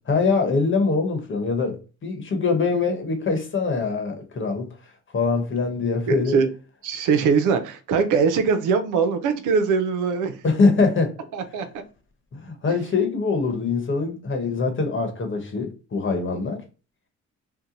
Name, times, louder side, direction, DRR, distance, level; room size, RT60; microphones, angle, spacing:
voice 1, 0.1-4.7 5.1-6.4 10.4-11.2 12.3-16.6, left 4 dB, 40° left, 1.0 m, -23 dB
voice 2, 6.1-6.5 6.8-10.4 11.3-11.7, right 5 dB, 90° right, 0.6 m, -21 dB
2.8 x 2.2 x 3.7 m
cardioid pair, 90°, 30 cm